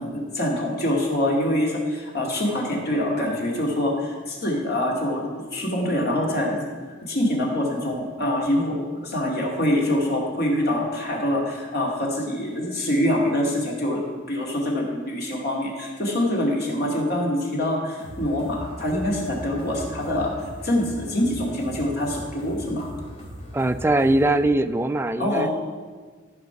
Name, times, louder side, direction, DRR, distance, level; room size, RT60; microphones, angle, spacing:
voice 1, 0.0-6.6 7.0-20.3 20.6-22.9 25.2-25.5, left 1 dB, 55° left, -2 dB, 2.3 m, -25 dB
sound 1, 18.0-24.4, equal, 35° left, 2.8 m, -39 dB
voice 2, 23.5-25.5, right 2 dB, 10° right, 10 dB, 0.3 m, -21 dB
13.5 x 5.1 x 5.9 m, 1.5 s
head